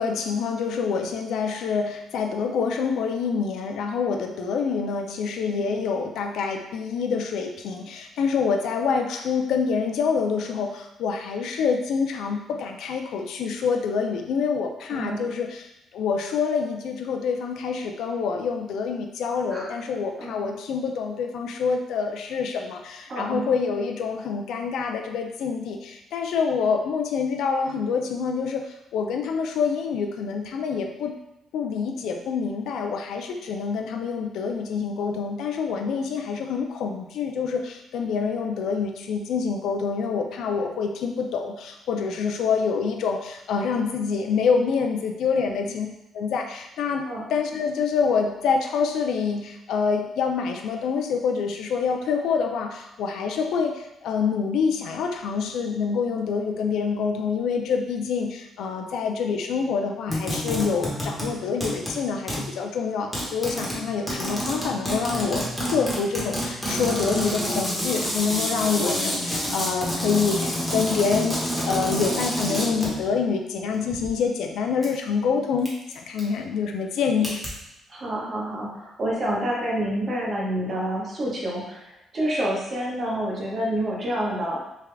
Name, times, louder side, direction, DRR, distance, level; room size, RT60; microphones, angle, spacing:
voice 1, 0.0-15.7 15.9-28.6 28.9-31.1 31.5-45.9 46.1-47.0 47.3-77.4, left 5 dB, 80° left, 3 dB, 0.4 m, -26 dB
voice 2, 5.5-5.8 14.9-15.3 19.5-19.7 20.2-20.5 23.1-23.5 45.4-45.7 47.0-47.2 77.9-81.8 82.1-84.6, right 1 dB, 40° right, -4 dB, 1.0 m, -28 dB
sound 1, 60.1-61.4 61.6-62.0 62.3-62.5 63.1-73.1 73.7-74.1 74.8-74.9 75.7-75.9 76.2-76.3 77.2-77.5, equal, ahead, 1.1 m, -28 dB
3.4 x 2.3 x 3.3 m, 0.87 s
cardioid pair, 115°, 0 cm